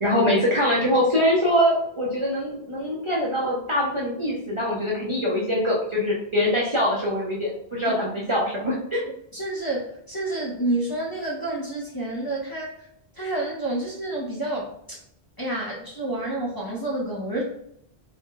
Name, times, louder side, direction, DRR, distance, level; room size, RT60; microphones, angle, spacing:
voice 1, 0.0-9.0, equal, 40° right, -5 dB, 0.5 m, -23 dB
voice 2, 9.3-12.9 13.1-15.0 15.4-17.4, right 2 dB, 25° left, -6 dB, 0.6 m, -29 dB
2.6 x 2.2 x 3.6 m, 0.73 s
omnidirectional pair, 1.0 m